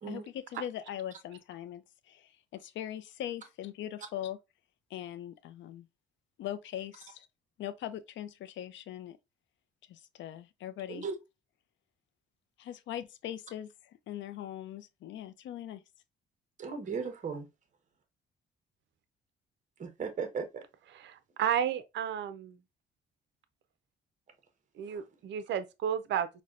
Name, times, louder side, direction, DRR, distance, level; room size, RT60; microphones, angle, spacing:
voice 1, 0.1-4.4 4.9-5.9 6.4-7.3 7.6-9.2 9.9-11.1 12.6-15.8, left 11 dB, 70° left, 0.4 m, -41 dB
voice 2, 16.6-17.5 19.8-20.6 24.9-25.0, right 5 dB, 40° right, 0.8 m, -36 dB
voice 3, 20.9-22.6 24.7-26.3, right 9 dB, 65° right, 0.5 m, -32 dB
4.1 x 2.1 x 2.4 m
cardioid pair, 90°, 20 cm